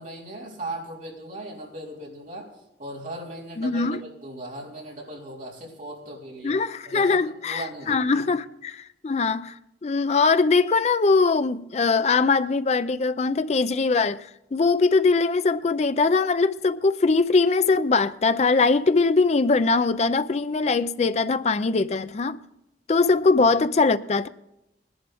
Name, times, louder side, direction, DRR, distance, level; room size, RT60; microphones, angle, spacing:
voice 1, 0.0-6.6 6.8-8.2, right 1 dB, 45° right, 3.8 m, -38 dB
voice 2, 3.6-4.0 6.4-9.5 9.8-22.4 22.9-24.3, left 4 dB, 40° left, 0.4 m, -21 dB
19.5 x 11.0 x 3.5 m
head